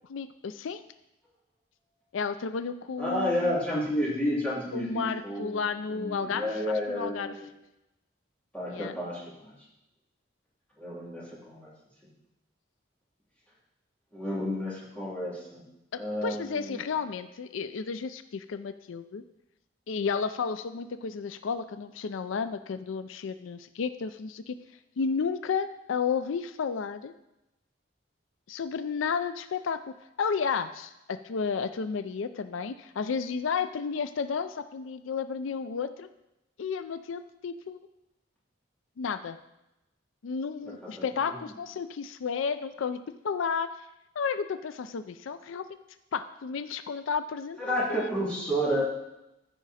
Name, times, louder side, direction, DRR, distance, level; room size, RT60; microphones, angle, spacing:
voice 1, 0.1-0.8 2.1-3.6 4.7-7.3 8.7-8.9 15.9-19.2 19.9-24.6 25.0-27.1 28.5-36.1 36.6-37.9 39.0-39.4 40.2-43.0 43.2-43.7 44.2-45.8 46.1-48.1, left 5 dB, 85° left, 11 dB, 0.4 m, -32 dB
voice 2, 3.0-5.6 5.9-7.4 8.5-9.5 10.8-11.7 12.0-12.1 14.1-15.6 15.9-16.8 41.0-41.4 47.6-48.8, equal, 5° left, -8 dB, 2.9 m, -31 dB
14.5 x 5.0 x 4.2 m, 0.91 s
head